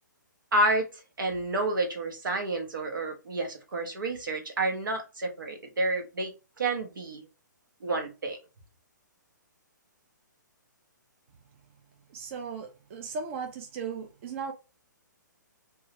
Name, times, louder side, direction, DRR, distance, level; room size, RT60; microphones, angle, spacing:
voice 1, 0.5-0.9 1.2-7.2 7.8-8.4, right 2 dB, 90° right, 1.0 m, -29 dB
voice 2, 12.1-14.5, right 5 dB, 40° right, 0.5 m, -37 dB
2.8 x 2.4 x 2.8 m
hypercardioid pair, 150°, 11 cm